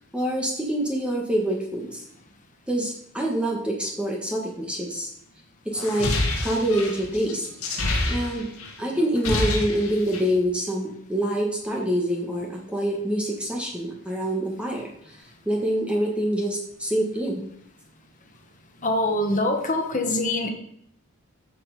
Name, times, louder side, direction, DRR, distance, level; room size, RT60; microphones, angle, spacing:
voice 1, 0.1-2.0 2.7-5.1 5.6-6.1 6.4-7.5 8.1-8.5 8.8-15.2 15.4-17.4, right 1 dB, 5° right, -2 dB, 1.7 m, -26 dB
sound 1, 5.8-8.7 9.0-10.4, left 2 dB, 80° left, 2.2 m, -27 dB
voice 2, 18.8-20.5, left 1 dB, 35° left, 3 dB, 1.7 m, -24 dB
14.0 x 6.0 x 5.1 m, 0.71 s
head